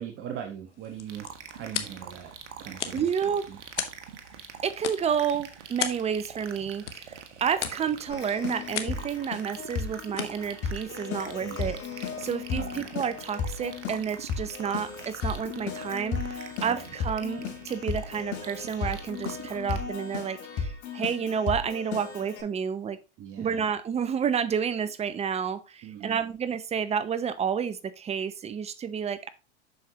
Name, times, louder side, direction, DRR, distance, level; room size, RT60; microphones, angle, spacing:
voice 1, 0.0-2.3 2.6-3.6 11.4-11.7 12.6-12.9 16.6-16.9 23.2-23.7 25.8-26.2, right 9 dB, 35° right, 3 dB, 1.2 m, -41 dB
sound 1, 0.7-11.9, left 9 dB, 85° left, 1.1 m, -40 dB
sound 2, 1.1-19.8, right 8 dB, 80° right, 1.5 m, -45 dB
voice 2, 2.9-3.5 4.6-23.0 23.4-29.3, right 7 dB, 20° right, 14 dB, 0.6 m, -30 dB
Keyboard (musical), 8.1-22.4, left 6 dB, 50° left, 3.9 m, -35 dB
7.9 x 6.4 x 2.9 m, 0.30 s
hypercardioid pair, 110°, 35 cm